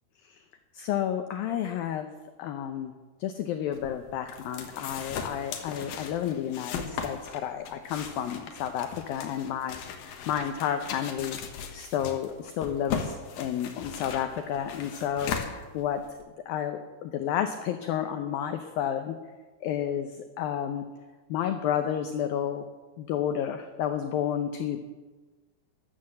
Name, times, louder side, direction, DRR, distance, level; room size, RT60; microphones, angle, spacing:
voice 1, 0.7-2.1 2.4-2.9 3.2-9.8 10.0-11.4 11.7-16.0 16.5-19.2 19.6-20.9 21.3-22.7 23.0-24.8, left 9 dB, 90° left, 7 dB, 2.0 m, -31 dB
sound 1, 3.7-16.2, left 7 dB, 65° left, 2.6 m, -38 dB
13.0 x 12.0 x 7.7 m, 1.3 s
omnidirectional pair, 5.2 m